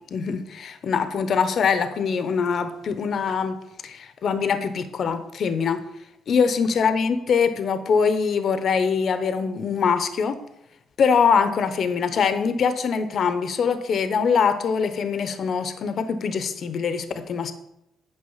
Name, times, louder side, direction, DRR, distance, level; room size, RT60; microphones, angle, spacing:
voice 1, 0.1-3.6 3.8-5.8 6.3-10.4 11.0-17.5, left 6 dB, 60° left, 10 dB, 0.8 m, -23 dB
8.9 x 6.2 x 5.6 m, 0.83 s
cardioid pair, 90°, 0 cm